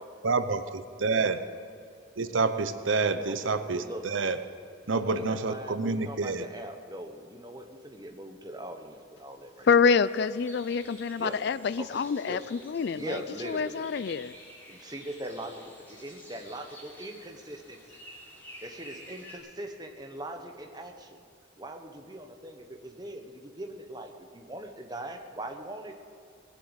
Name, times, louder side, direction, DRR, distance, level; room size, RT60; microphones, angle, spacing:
voice 1, 0.2-1.4 2.2-4.4 4.9-6.4, right 4 dB, 70° right, 10 dB, 0.8 m, -28 dB
voice 2, 3.2-4.1 4.9-9.7 11.2-11.4 11.8-12.4 12.9-13.9 14.7-15.5 16.0-18.0 18.6-21.2 21.6-26.0, right 1 dB, 20° right, 5 dB, 1.1 m, -41 dB
voice 3, 9.6-13.2 13.5-14.3, left 5 dB, 55° left, 16 dB, 0.4 m, -26 dB
sound 1, 10.0-19.4, equal, 10° left, 3.4 m, -51 dB
19.5 x 7.8 x 8.1 m, 2.5 s
head